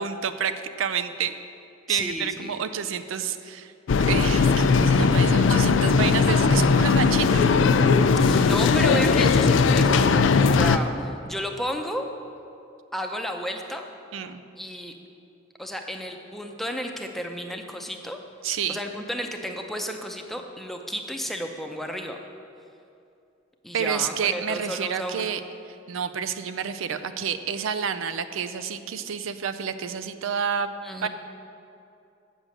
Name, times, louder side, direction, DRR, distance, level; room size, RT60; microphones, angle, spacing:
voice 1, 0.0-1.3 1.9-3.7 4.1-7.6 14.1-14.4 18.4-18.8 23.7-25.4 25.9-30.7 31.0-31.1, right 7 dB, 80° right, 10 dB, 0.5 m, -29 dB
voice 2, 1.9-2.6 8.2-12.1 12.9-13.8 14.6-14.9 15.6-18.2 18.7-22.2 23.6-25.4 30.8-31.1, equal, ahead, 3 dB, 0.6 m, -32 dB
sound 1, 3.9-10.8, left 4 dB, 65° left, 0.4 m, -19 dB
8.1 x 6.1 x 7.6 m, 2.6 s
head